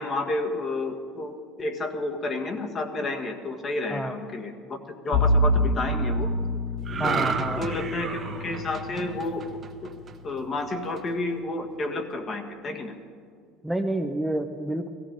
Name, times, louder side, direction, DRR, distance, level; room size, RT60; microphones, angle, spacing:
voice 1, 0.0-4.8 5.0-6.5 7.0-9.4 9.8-9.9 10.2-12.9, left 2 dB, 35° left, 4 dB, 1.6 m, -31 dB
Bowed string instrument, 5.1-10.2, left 1 dB, 55° left, 2.1 m, -27 dB
sound 1, 6.8-10.3 10.7-11.0, right 6 dB, 35° right, 1.2 m, -32 dB
voice 2, 7.0-7.7 13.6-14.9, right 1 dB, 5° right, 5 dB, 0.7 m, -29 dB
16.5 x 14.5 x 5.2 m, 2.3 s
supercardioid pair, 90°, 0 cm